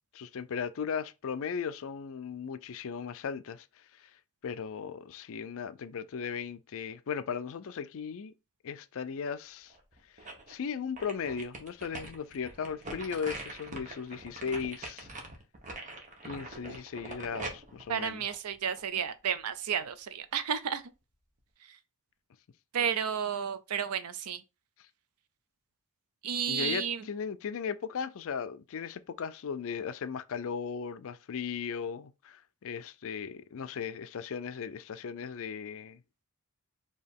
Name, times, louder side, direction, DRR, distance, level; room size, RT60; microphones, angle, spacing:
voice 1, 0.1-3.7 4.0-4.1 4.4-8.3 8.6-9.7 10.5-15.1 16.2-18.2 26.5-36.0, left 6 dB, 65° left, 0.4 m, -37 dB
sound 1, 9.7-10.5 11.0-19.0 19.4-19.5, right 2 dB, 35° right, 1.0 m, -43 dB
voice 2, 17.9-20.8 21.7-21.8 22.7-24.4 26.2-27.1, right 8 dB, 90° right, 0.5 m, -32 dB
4.5 x 2.8 x 3.5 m
head